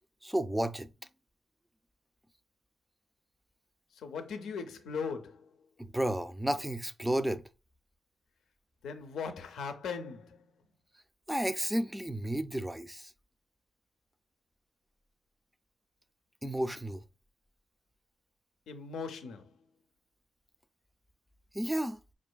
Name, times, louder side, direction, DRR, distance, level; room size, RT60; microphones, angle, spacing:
voice 1, 0.2-0.9 5.8-7.4 11.3-13.1 16.4-17.0 21.5-22.0, right 1 dB, 5° right, 0.3 m, -32 dB
voice 2, 3.9-5.5 8.8-10.5 18.7-19.6, left 5 dB, 90° left, 0.5 m, -39 dB
5.1 x 2.4 x 2.2 m
cardioid pair, 90°, 0 cm